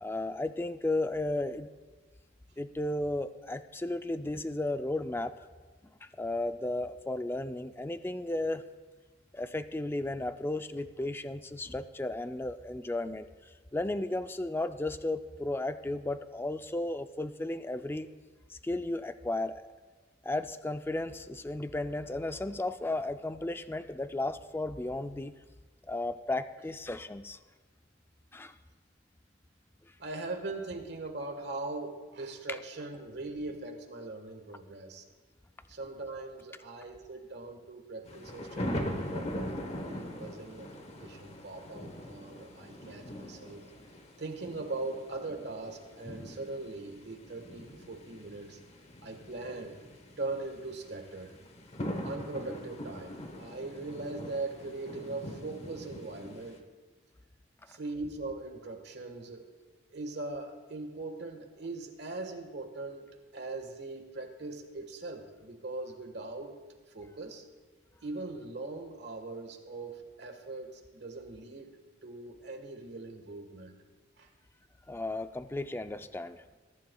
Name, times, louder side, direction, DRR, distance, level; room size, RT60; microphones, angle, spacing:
voice 1, 0.0-1.7 2.6-5.3 6.0-8.6 9.3-13.3 13.7-18.1 18.5-19.6 20.2-25.3 25.9-27.4 28.3-28.5 74.9-76.4, left 2 dB, 10° left, 10 dB, 0.3 m, -34 dB
voice 2, 30.0-35.0 35.7-43.6 44.2-48.6 49.0-49.8 50.2-51.3 52.0-56.6 57.7-59.5 59.9-63.1 63.3-66.5 66.9-67.4 68.0-73.8 74.2-74.3, right 2 dB, 60° right, 4 dB, 1.4 m, -40 dB
sound 1, 38.0-56.6, equal, 35° left, 1.0 m, -42 dB
21.5 x 11.0 x 2.3 m, 1.4 s
head